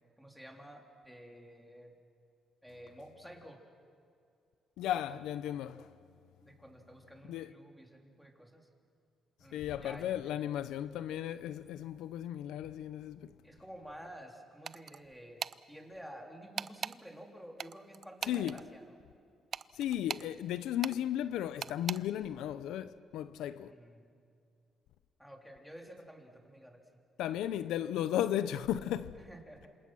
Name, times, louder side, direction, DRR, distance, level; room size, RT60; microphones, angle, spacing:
voice 1, 0.0-1.9 2.6-3.6 6.4-8.7 9.4-10.5 13.4-19.0 23.6-24.1 25.2-26.8 29.1-29.7, equal, ahead, 3.7 m, -51 dB
voice 2, 4.8-5.9 7.3-7.5 9.5-13.3 18.3-18.6 19.7-23.7 27.2-29.1, left 11 dB, 90° left, 0.7 m, -35 dB
sound 1, 14.7-15.0 15.4-15.6 16.6-17.0 17.6-18.6 19.5-20.3 20.8-21.0 21.6-22.0, right 7 dB, 50° right, 0.5 m, -39 dB
27.5 x 27.0 x 6.3 m
cardioid pair, 90°, 0 cm